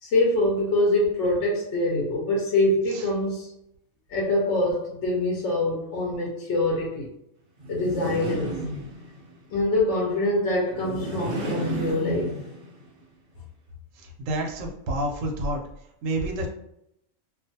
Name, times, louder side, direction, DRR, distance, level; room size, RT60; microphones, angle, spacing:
voice 1, 0.0-3.5 4.1-7.1 7.7-8.6 9.5-12.4, left 2 dB, 60° left, -3 dB, 0.8 m, -24 dB
sound 1, 7.6-9.3 10.7-12.9, right 1 dB, 50° right, 0.6 m, -32 dB
voice 2, 14.0-15.6 16.0-16.5, right 1 dB, 75° right, 1 dB, 0.9 m, -29 dB
2.4 x 2.3 x 2.6 m, 0.79 s
omnidirectional pair, 1.4 m